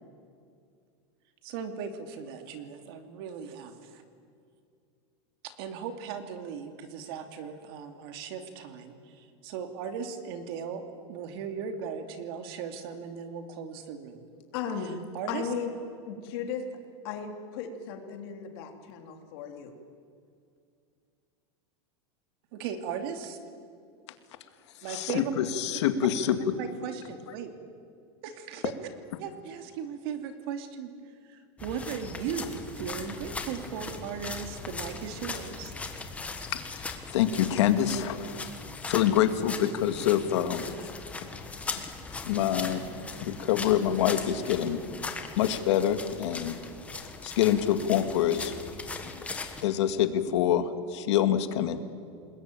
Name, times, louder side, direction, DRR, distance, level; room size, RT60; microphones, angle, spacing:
voice 1, 1.4-4.0 5.4-14.3 15.1-15.5 22.5-23.4 24.8-25.3 26.6-27.5 28.2-28.7 29.2-30.9 31.2-35.7, right 7 dB, 55° right, 6 dB, 2.6 m, -37 dB
voice 2, 14.5-15.0 15.3-15.7 16.1-16.6 17.0-19.7, left 7 dB, 55° left, 4 dB, 3.3 m, -35 dB
voice 3, 24.9-26.5 36.5-38.4 38.9-40.7 42.2-42.8 43.2-45.0 45.4-46.5 47.2-48.5 49.0-49.1 49.6-51.8, left 10 dB, 70° left, 9 dB, 2.1 m, -26 dB
sound 1, 31.6-49.6, left 4 dB, 10° left, 1.5 m, -39 dB
28.5 x 20.5 x 9.1 m, 2.4 s
supercardioid pair, 165°, 15 cm